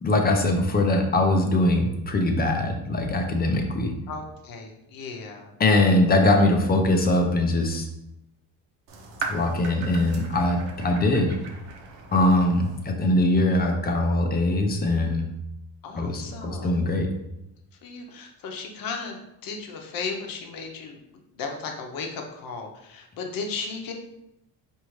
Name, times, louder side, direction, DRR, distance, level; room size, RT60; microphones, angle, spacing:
voice 1, 0.0-3.9 5.6-7.9 9.3-11.3 12.1-15.2 16.0-17.1, left 2 dB, 20° left, 3 dB, 0.6 m, -22 dB
voice 2, 4.1-5.5 15.8-16.9 17.8-21.0 21.3-23.9, left 4 dB, 55° left, 3 dB, 0.8 m, -35 dB
sound 1, 8.9-12.9, right 4 dB, 80° right, 0.9 m, -38 dB
4.8 x 2.7 x 3.1 m, 0.85 s
cardioid pair, 125°, 42 cm